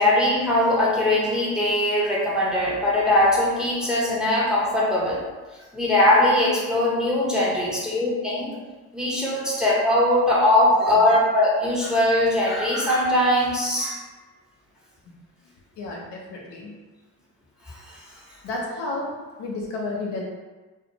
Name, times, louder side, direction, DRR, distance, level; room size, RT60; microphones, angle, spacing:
voice 1, 0.0-5.2 5.7-8.5 8.9-14.0 17.7-18.0, left 1 dB, ahead, -5 dB, 0.9 m, -21 dB
voice 2, 15.8-16.8 18.4-20.2, left 2 dB, 70° left, -2 dB, 0.7 m, -32 dB
2.5 x 2.2 x 2.9 m, 1.3 s
hypercardioid pair, 50°, 44 cm